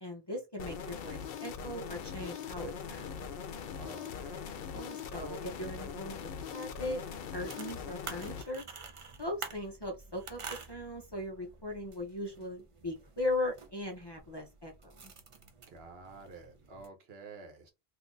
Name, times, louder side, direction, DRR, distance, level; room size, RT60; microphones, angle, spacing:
voice 1, 0.0-3.2 4.7-7.0 7.3-8.6 9.2-15.1, left 1 dB, 30° left, 0.5 m, -39 dB
sound 1, 0.6-8.4, left 7 dB, 65° left, 0.7 m, -41 dB
voice 2, 3.7-4.5 15.7-17.7, right 3 dB, 75° right, 1.1 m, -50 dB
sound 2, 6.1-16.9, right 5 dB, 40° right, 0.5 m, -49 dB
2.7 x 2.4 x 3.7 m
omnidirectional pair, 1.1 m